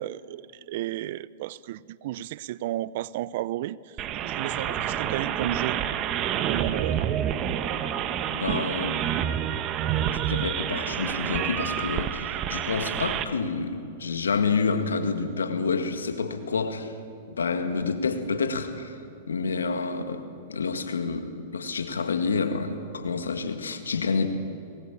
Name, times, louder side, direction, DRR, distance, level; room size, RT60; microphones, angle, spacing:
voice 1, 0.0-4.0 4.2-5.8 6.5-7.0, right 14 dB, 60° right, 20 dB, 0.6 m, -32 dB
sound 1, 4.0-13.2, right 10 dB, 35° right, 1.3 m, -28 dB
voice 2, 8.3-9.0 10.0-16.9 17.3-18.9 19.3-20.2 20.5-24.3, left 4 dB, 90° left, 8 dB, 2.0 m, -28 dB
22.0 x 19.0 x 8.5 m, 2.5 s
hypercardioid pair, 110°, 0 cm